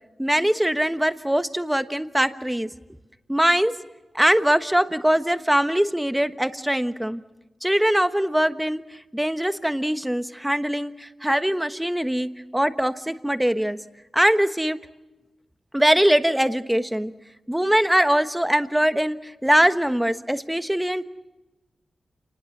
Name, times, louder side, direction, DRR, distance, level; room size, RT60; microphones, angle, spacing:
voice 1, 0.2-2.7 3.3-3.7 4.1-7.2 7.6-8.8 9.1-13.8 14.1-14.8 15.7-17.1 17.5-21.0, equal, 5° right, 10 dB, 1.2 m, -22 dB
29.0 x 20.0 x 7.3 m, 1.1 s
wide cardioid pair, 115°, 0 cm